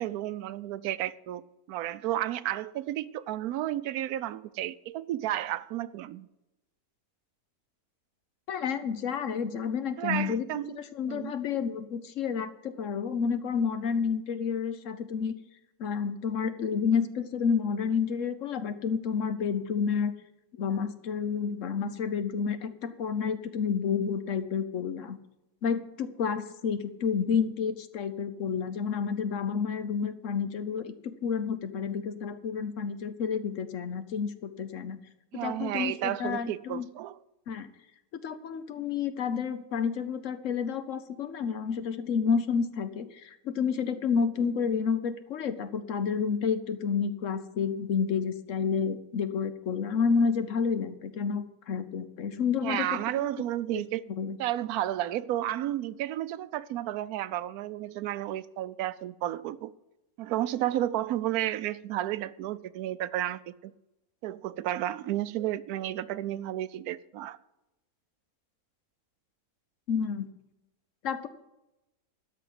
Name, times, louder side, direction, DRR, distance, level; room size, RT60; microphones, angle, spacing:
voice 1, 0.0-1.4 1.7-6.2 10.0-10.8 11.1-11.3 35.3-37.2 52.6-54.0 54.4-59.7 60.2-63.7 64.2-67.4, right 13 dB, 85° right, 1.1 m, -32 dB
voice 2, 8.5-15.3 15.8-20.1 20.5-25.2 25.6-30.9 31.2-35.0 35.4-36.9 37.5-37.7 38.1-53.3 53.7-53.8 54.1-54.4 69.9-70.3 71.0-71.3, left 6 dB, 65° left, 1.1 m, -30 dB
12.5 x 5.6 x 9.2 m
omnidirectional pair, 1.5 m